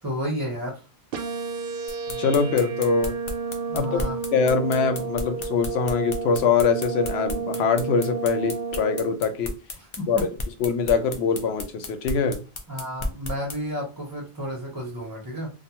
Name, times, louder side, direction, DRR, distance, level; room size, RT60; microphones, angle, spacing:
voice 1, 0.0-0.8 3.7-4.2 10.0-10.2 12.7-15.5, equal, 25° right, -2 dB, 0.7 m, -31 dB
sound 1, 1.1-9.1, right 4 dB, 65° right, 0.7 m, -31 dB
sound 2, 1.9-13.6, left 2 dB, 50° left, 0.3 m, -33 dB
voice 2, 2.2-3.2 3.7-4.0 4.3-9.5 10.1-12.4, left 5 dB, 85° left, 7 dB, 0.8 m, -23 dB
2.3 x 2.3 x 2.8 m, 0.33 s
omnidirectional pair, 1.1 m